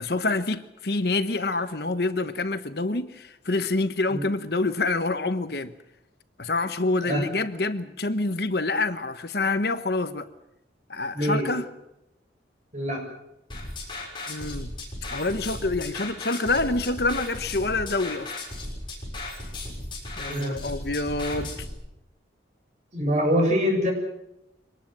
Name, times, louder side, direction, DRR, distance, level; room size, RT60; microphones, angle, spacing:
voice 1, 0.0-5.7 6.4-10.3 10.9-11.7 14.3-14.7 15.1-18.3 20.2-21.5, left 2 dB, 55° left, 11 dB, 1.1 m, -27 dB
voice 2, 11.1-11.5 12.7-13.0 20.3-20.6 22.9-23.9, equal, 40° right, 1 dB, 7.2 m, -24 dB
sound 1, 13.5-21.7, left 2 dB, 25° left, 6.5 m, -36 dB
24.0 x 19.5 x 7.7 m, 0.84 s
head